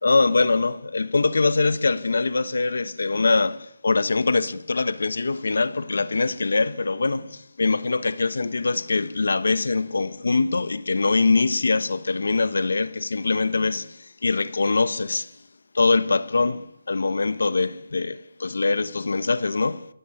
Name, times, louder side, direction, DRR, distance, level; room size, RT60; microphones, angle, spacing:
voice 1, 0.0-15.3 15.7-19.9, left 3 dB, 80° left, 1.3 m, -23 dB
29.0 x 17.5 x 9.9 m
hypercardioid pair, 165°, 0 cm